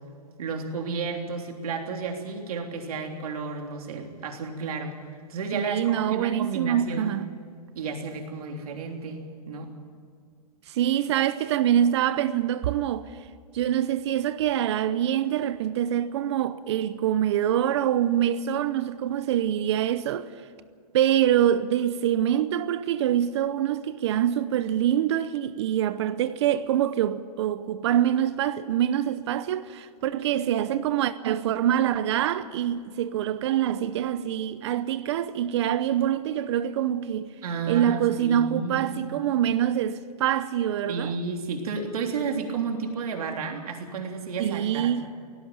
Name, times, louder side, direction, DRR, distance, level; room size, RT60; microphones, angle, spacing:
voice 1, 0.4-5.0 5.3-7.2 7.8-9.7 37.4-39.0 40.9-44.9, right 5 dB, 65° right, 3.4 m, -32 dB
voice 2, 5.5-7.3 10.7-13.0 13.5-20.3 20.9-37.3 37.7-41.1 44.4-45.1, right 10 dB, 45° right, 0.7 m, -25 dB
17.5 x 16.0 x 9.4 m
hypercardioid pair, 155°, 21 cm